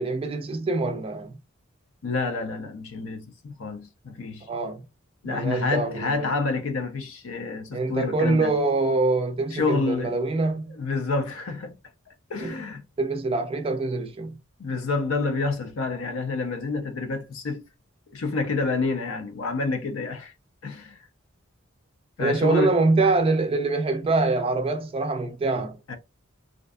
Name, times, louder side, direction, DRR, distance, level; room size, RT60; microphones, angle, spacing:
voice 1, 0.0-1.4 4.5-4.8 5.2-6.3 7.7-10.8 12.4-12.5 13.0-14.4 22.2-25.8, right 3 dB, 30° right, 0.4 m, -24 dB
voice 2, 2.0-4.5 5.2-8.5 9.5-10.2 10.7-11.8 12.3-12.8 14.6-17.6 18.1-20.3 20.6-21.0 22.2-22.8 25.9-26.0, left 3 dB, 75° left, 0.5 m, -28 dB
2.5 x 2.4 x 2.2 m
head